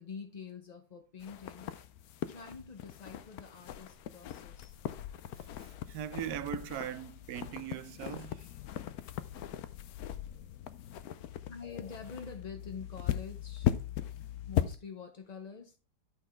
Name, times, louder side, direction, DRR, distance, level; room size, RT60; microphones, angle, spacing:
voice 1, 0.0-1.7 2.3-4.7 11.5-13.7 14.5-15.8, left 5 dB, 45° left, 0.5 m, -46 dB
sound 1, 1.2-14.8, left 11 dB, 70° left, 1.0 m, -38 dB
voice 2, 5.6-8.5, right 11 dB, 70° right, 1.0 m, -40 dB
11.5 x 4.1 x 4.3 m
omnidirectional pair, 1.9 m